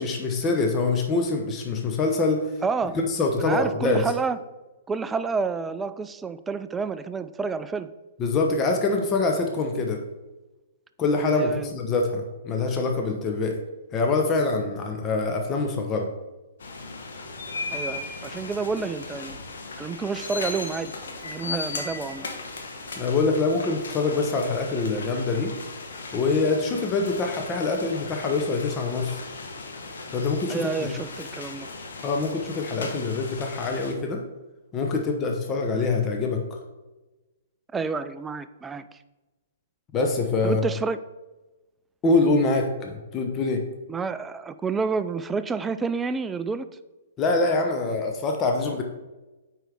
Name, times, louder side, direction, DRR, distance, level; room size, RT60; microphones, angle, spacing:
voice 1, 0.0-2.5 2.9-4.1 8.2-10.0 11.0-13.6 13.9-16.1 23.0-25.6 26.1-29.2 30.1-30.9 32.0-34.2 34.7-36.6 39.9-40.6 42.0-43.6 47.2-48.8, left 3 dB, 25° left, 2 dB, 0.9 m, -25 dB
voice 2, 2.6-3.0 3.4-4.4 4.9-7.9 11.3-11.7 17.7-19.4 19.8-20.9 21.2-22.3 30.5-31.7 37.7-38.8 40.4-41.0 43.9-46.7, right 4 dB, 15° right, 12 dB, 0.3 m, -29 dB
sound 1, 16.6-33.9, left 3 dB, 65° left, 1.2 m, -37 dB
9.0 x 4.7 x 3.5 m, 1.1 s
figure-of-eight pair, 115°, 0 cm